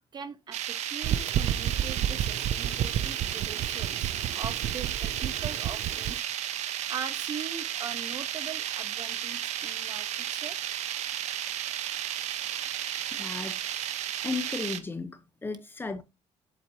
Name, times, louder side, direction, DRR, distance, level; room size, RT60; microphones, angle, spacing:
voice 1, 0.1-6.2 6.9-10.6, right 6 dB, 40° right, 1.1 m, -41 dB
sound 1, 0.5-14.8, right 11 dB, 80° right, 1.0 m, -33 dB
sound 2, 1.0-6.2, right 10 dB, 60° right, 0.4 m, -31 dB
voice 2, 13.1-13.9 14.2-16.0, left 4 dB, 20° left, 0.9 m, -35 dB
8.1 x 7.8 x 2.9 m
cardioid pair, 155°, 12 cm